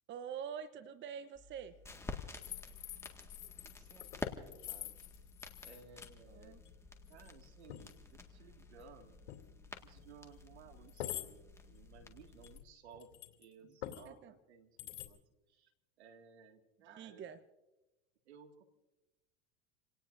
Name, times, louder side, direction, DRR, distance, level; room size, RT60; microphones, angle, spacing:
voice 1, 0.1-1.8 6.3-6.6 13.9-14.3 16.9-17.4, right 8 dB, 35° right, 11 dB, 1.0 m, -46 dB
sound 1, 1.3-12.6, left 3 dB, 10° left, 1.9 m, -50 dB
sound 2, 2.3-6.1 6.4-6.8 7.1-7.3 7.7-7.9 9.3-9.4 10.0-10.1 10.9-11.3 12.4-13.5 13.8-14.1 14.8-15.1, left 13 dB, 80° left, 2.8 m, -46 dB
voice 2, 3.6-5.0 5.6-6.6 7.1-9.2 9.8-13.1 13.4-15.2 15.5-15.7 16.0-17.3 18.2-18.6, right 6 dB, 85° right, 5 dB, 2.2 m, -59 dB
29.0 x 18.5 x 2.6 m, 1.0 s
hypercardioid pair, 105°, 32 cm